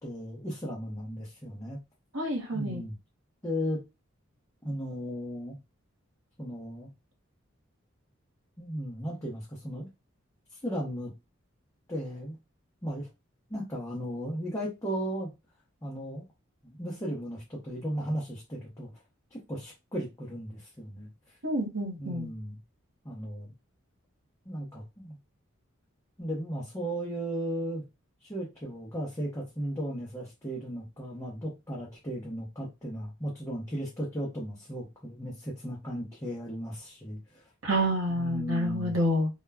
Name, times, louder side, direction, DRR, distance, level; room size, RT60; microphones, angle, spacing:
voice 1, 0.0-1.8 2.5-2.9 3.4-3.8 4.6-5.6 6.4-6.9 8.6-9.9 10.6-11.1 11.9-12.4 12.8-13.1 13.5-15.3 15.8-16.2 16.6-18.9 19.3-21.1 22.0-22.6 23.0-23.5 24.5-25.2 26.2-27.8 28.2-37.4 38.1-39.0, equal, 15° left, 0.6 m, -36 dB
voice 2, 2.1-2.8 21.4-22.3 37.6-39.3, equal, 65° right, 1.0 m, -28 dB
2.2 x 2.1 x 3.3 m
head